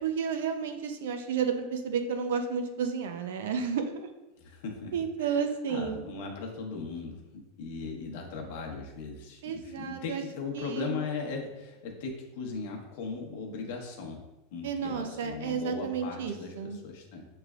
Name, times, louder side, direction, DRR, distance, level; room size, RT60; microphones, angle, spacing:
voice 1, 0.0-4.1 4.9-6.0 9.4-10.2 10.5-11.0 14.6-16.8, right 6 dB, 80° right, 7 dB, 0.5 m, -32 dB
voice 2, 4.4-4.9 5.2-5.4 5.7-14.2 14.5-17.2, left 4 dB, 60° left, 0 dB, 1.0 m, -38 dB
6.6 x 3.2 x 2.4 m, 1.0 s
supercardioid pair, 155°, 0 cm